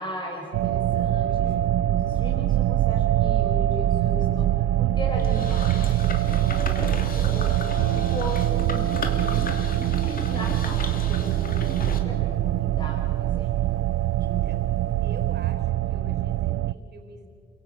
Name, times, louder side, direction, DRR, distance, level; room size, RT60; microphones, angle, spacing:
voice 1, 0.0-1.3 1.9-4.5 4.8-7.6 7.9-9.0 9.3-13.7, left 1 dB, 25° left, -2 dB, 4.6 m, -37 dB
sound 1, 0.5-16.7, right 13 dB, 80° right, 0.5 m, -24 dB
voice 2, 1.2-1.7 14.2-14.6 15.0-17.3, right 4 dB, 55° right, 6 dB, 4.3 m, -45 dB
sound 2, 5.2-12.0, left 4 dB, 45° left, 3.1 m, -36 dB
Guitar, 7.8-14.5, right 5 dB, 85° left, 6.3 m, -40 dB
28.5 x 16.5 x 8.7 m, 2.6 s
cardioid pair, 90°, 20 cm